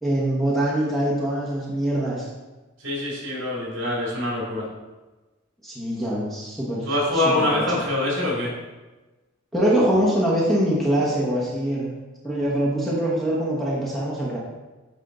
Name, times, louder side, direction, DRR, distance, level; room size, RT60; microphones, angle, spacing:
voice 1, 0.0-2.3 5.6-7.6 9.5-11.9 12.2-14.4, right 1 dB, ahead, -6 dB, 1.1 m, -23 dB
voice 2, 2.8-4.7 6.9-8.5, left 1 dB, 60° right, -4 dB, 2.4 m, -24 dB
9.0 x 3.6 x 3.9 m, 1.2 s
head